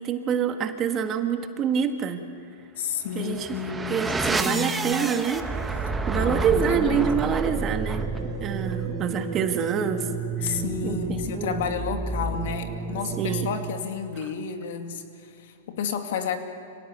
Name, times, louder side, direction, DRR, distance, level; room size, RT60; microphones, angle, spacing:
voice 1, 0.0-2.2 3.1-3.5 3.9-5.5 5.8-8.1 8.4-10.1 10.4-11.7 13.2-13.5, right 7 dB, 30° right, 7 dB, 1.6 m, -27 dB
voice 2, 2.8-4.1 4.3-5.0 6.1-7.2 10.4-16.4, left 7 dB, 65° left, 6 dB, 2.5 m, -31 dB
sound 1, 3.1-9.8, right 3 dB, 20° left, 6.3 m, -43 dB
sound 2, 3.2-13.9, right 3 dB, 10° right, 1.3 m, -30 dB
26.0 x 17.5 x 8.4 m, 2.7 s
hypercardioid pair, 130°, 0 cm